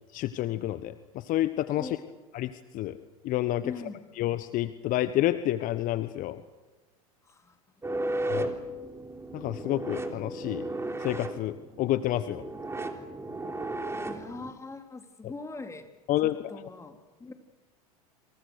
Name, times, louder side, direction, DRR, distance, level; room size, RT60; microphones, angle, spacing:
voice 1, 0.1-1.9 2.3-2.9 3.2-3.7 4.2-6.4 8.3-8.5 9.3-10.7 11.0-12.4 16.1-16.3, left 14 dB, 45° left, 12 dB, 1.2 m, -29 dB
voice 2, 3.6-4.1 7.2-7.6 7.8-8.5 14.0-15.8 16.2-17.3, left 3 dB, 15° left, 4 dB, 3.7 m, -42 dB
sound 1, 7.8-14.5, right 2 dB, 15° right, 3.5 m, -35 dB
28.5 x 27.0 x 6.6 m, 1.2 s
hypercardioid pair, 85°, 19 cm